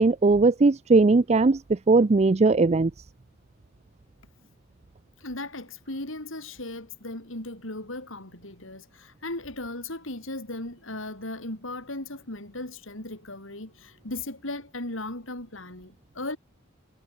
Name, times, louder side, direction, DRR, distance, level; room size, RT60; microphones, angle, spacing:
voice 1, 0.0-2.9, right 3 dB, 30° right, 0.5 m, -19 dB
voice 2, 5.2-16.4, left 2 dB, 70° left, 4.9 m, -37 dB
head